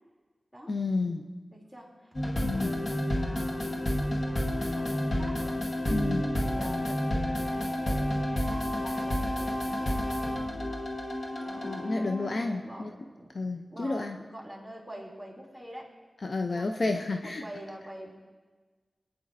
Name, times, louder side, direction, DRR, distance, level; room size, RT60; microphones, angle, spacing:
voice 1, 0.7-1.3 2.4-2.7 5.9-6.3 11.6-12.9 13.3-14.2 16.2-17.4, left 3 dB, 65° left, 5 dB, 0.5 m, -31 dB
voice 2, 1.5-5.6 6.3-10.6 11.4-13.3 13.7-15.9 16.5-16.7 17.2-18.1, right 1 dB, 10° left, -2 dB, 2.8 m, -46 dB
sound 1, 2.1-12.6, left 1 dB, 45° left, 1.3 m, -30 dB
19.0 x 9.3 x 2.6 m, 1.4 s
cardioid pair, 50°, 0 cm